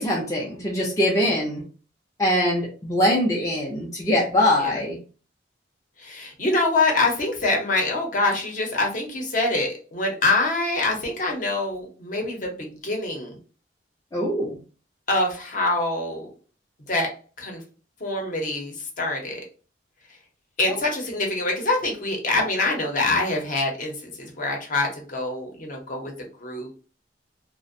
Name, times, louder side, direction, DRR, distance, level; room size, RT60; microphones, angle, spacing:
voice 1, 0.0-1.6 2.2-5.0 14.1-14.6 20.7-20.8, left 1 dB, 15° left, -3 dB, 0.4 m, -23 dB
voice 2, 6.0-13.4 15.1-16.3 16.9-17.1 17.4-17.6 18.0-19.4 20.6-26.7, left 2 dB, 45° left, 1 dB, 0.7 m, -25 dB
2.4 x 2.1 x 2.5 m, 0.37 s
head